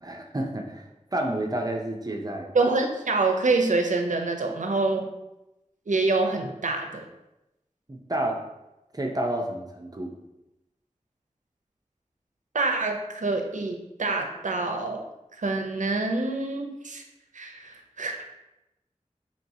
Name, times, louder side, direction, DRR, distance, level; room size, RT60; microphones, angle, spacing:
voice 1, 0.0-0.8 1.1-2.5 7.9-8.4 8.9-10.1, right 1 dB, 30° right, 2 dB, 0.6 m, -30 dB
voice 2, 2.5-5.1 5.9-7.1 12.5-15.0 15.3-17.0 17.3-18.3, right 3 dB, 75° right, 3 dB, 0.5 m, -26 dB
4.3 x 3.0 x 2.7 m, 0.94 s
wide cardioid pair, 55°, 13 cm